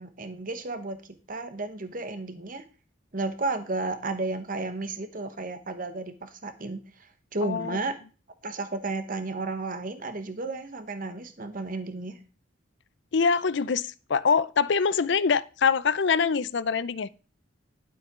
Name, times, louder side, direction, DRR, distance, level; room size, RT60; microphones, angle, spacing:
voice 1, 0.0-2.7 3.1-8.0 8.4-12.2, right 2 dB, 45° right, 1.3 m, -33 dB
voice 2, 7.4-7.8 13.1-17.1, left 5 dB, 65° left, 0.5 m, -24 dB
12.0 x 7.9 x 3.8 m
head